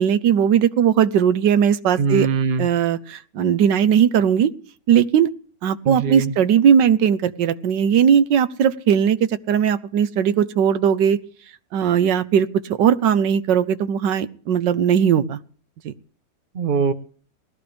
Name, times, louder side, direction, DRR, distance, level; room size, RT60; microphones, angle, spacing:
voice 1, 0.0-2.3 2.6-4.5 4.9-5.3 5.6-9.2 9.5-11.2 11.7-15.4 15.8-15.9, right 8 dB, 80° right, 12 dB, 1.5 m, -18 dB
voice 2, 2.0-2.7 5.9-6.3 16.5-16.9, right 5 dB, 40° right, 8 dB, 0.9 m, -21 dB
20.0 x 14.0 x 3.4 m, 0.43 s
omnidirectional pair, 1.9 m